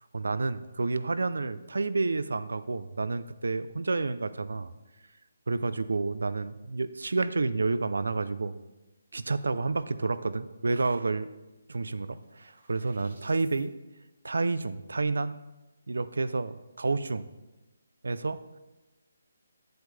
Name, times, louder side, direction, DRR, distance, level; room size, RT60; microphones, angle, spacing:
voice 1, 0.1-4.7 5.5-8.6 9.1-11.3 11.7-13.7 14.2-15.4 15.9-17.2 18.0-18.4, right 3 dB, 85° right, 13 dB, 0.5 m, -30 dB
sound 1, 11.3-13.7, right 3 dB, 60° right, 2.0 m, -60 dB
9.5 x 8.0 x 3.3 m, 1.1 s
hypercardioid pair, 175°, 0 cm